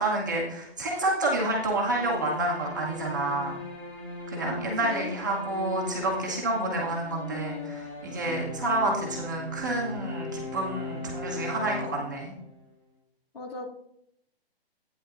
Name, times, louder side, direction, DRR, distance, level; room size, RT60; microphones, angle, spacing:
voice 1, 0.0-3.6 4.3-12.3, right 2 dB, 20° right, -3 dB, 0.9 m, -29 dB
sound 1, 1.5-12.6, left 2 dB, 5° left, 2.4 m, -39 dB
voice 2, 4.8-5.1 13.3-13.7, left 2 dB, 65° left, -1 dB, 2.4 m, -37 dB
11.5 x 9.2 x 2.5 m, 0.75 s
hypercardioid pair, 175°, 32 cm